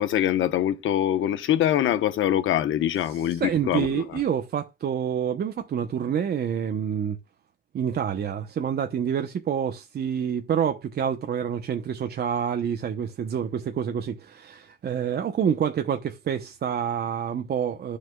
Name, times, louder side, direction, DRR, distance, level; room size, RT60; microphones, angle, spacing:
voice 1, 0.0-4.0, left 11 dB, 80° left, 1.0 m, -24 dB
voice 2, 3.0-7.2 7.7-18.0, right 8 dB, 55° right, 0.9 m, -27 dB
11.5 x 6.4 x 2.3 m
cardioid pair, 90°, 20 cm